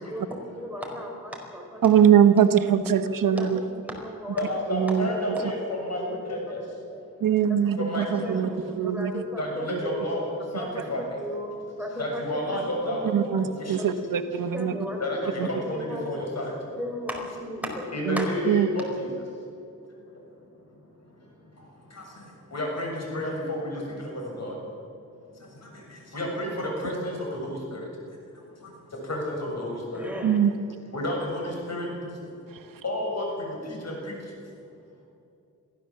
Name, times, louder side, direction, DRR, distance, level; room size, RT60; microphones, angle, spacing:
voice 1, 0.1-1.9 2.4-2.5 3.2-4.4 4.8-4.9 5.4-5.5 5.7-6.1 6.9-7.0 7.7-8.5 8.8-10.0 10.6-10.9 11.2-11.5 11.8-13.4 13.8-13.9 14.5-15.3 15.6-16.1 16.7-18.6 29.9-30.4, equal, 5° right, 0 dB, 4.6 m, -36 dB
voice 2, 1.8-3.6 4.7-5.4 7.2-8.5 8.8-9.2 9.7-9.8 13.1-14.7 18.1-18.7 30.2-30.5, right 8 dB, 80° right, 9 dB, 1.1 m, -22 dB
voice 3, 4.4-6.6 7.8-8.4 9.4-11.0 12.0-13.1 13.4-13.8 15.0-15.2 15.4-16.5 17.9-19.1 22.0-22.1 22.5-24.5 26.1-27.8 29.1-30.1 30.9-31.9 32.8-33.9, left 1 dB, 50° left, -1 dB, 7.2 m, -31 dB
23.0 x 15.5 x 7.6 m, 2.6 s
wide cardioid pair, 110°, 33 cm